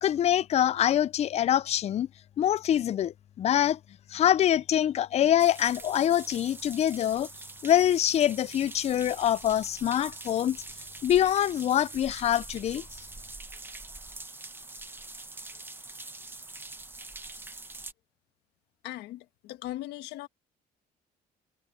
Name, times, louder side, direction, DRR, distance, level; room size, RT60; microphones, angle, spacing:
voice 1, 0.0-2.1 2.4-3.8 4.1-7.3 7.6-10.6 11.0-12.8, left 11 dB, 40° left, 0.4 m, -25 dB
sound 1, 5.4-17.9, right 2 dB, 15° right, 1.2 m, -44 dB
voice 2, 18.8-20.3, left 15 dB, 85° left, 1.5 m, -39 dB
cardioid pair, 110°, 17 cm